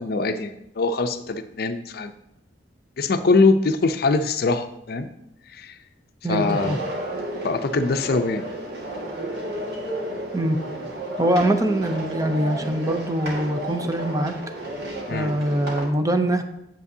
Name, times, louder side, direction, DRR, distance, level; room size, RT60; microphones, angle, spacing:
voice 1, 0.0-2.1 3.0-5.1 5.5-5.7 6.3-6.8 7.4-8.4 15.1-15.3, left 3 dB, 60° left, 8 dB, 0.5 m, -22 dB
voice 2, 6.2-6.8 10.3-10.6 11.2-14.3 15.1-16.4, right 1 dB, 20° right, 6 dB, 0.5 m, -23 dB
sound 1, 6.4-15.9, right 1 dB, 65° right, 1.8 m, -32 dB
8.4 x 7.5 x 2.7 m, 0.82 s
head